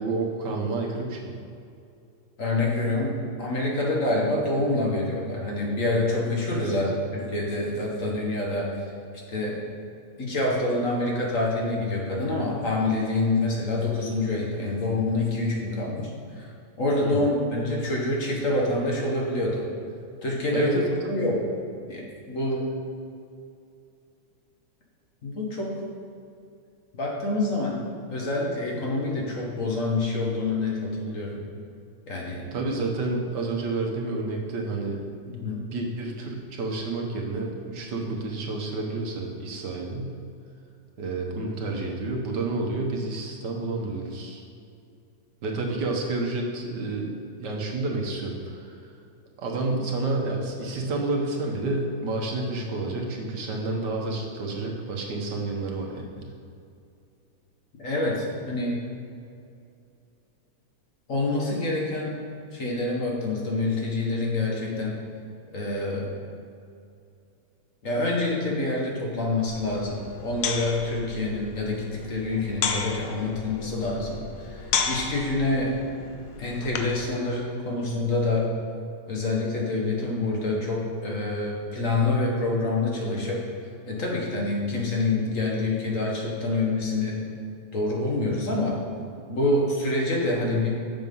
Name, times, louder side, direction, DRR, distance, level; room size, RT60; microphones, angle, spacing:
voice 1, 0.0-1.3 6.6-6.8 17.0-17.3 20.5-21.5 32.5-35.0 35.6-40.2 41.0-44.4 45.4-48.8 49.4-56.3, right 2 dB, 70° right, 0 dB, 1.7 m, -30 dB
voice 2, 2.4-6.9 7.1-8.7 9.3-9.6 10.2-16.5 16.8-19.7 20.2-20.8 21.1-21.3 21.9-22.6 25.2-25.7 26.9-27.8 28.1-31.4 32.1-32.5 35.3-35.6 57.8-58.8 61.1-62.2 62.5-65.0 65.5-66.1 67.8-75.7 76.4-78.5 79.1-83.4 83.9-87.2 87.7-88.8 89.3-90.7, left 2 dB, 50° left, -2 dB, 1.7 m, -26 dB
sound 1, 69.5-77.1, left 6 dB, 85° left, 1.5 m, -33 dB
7.3 x 6.2 x 5.4 m, 2.5 s
omnidirectional pair, 2.0 m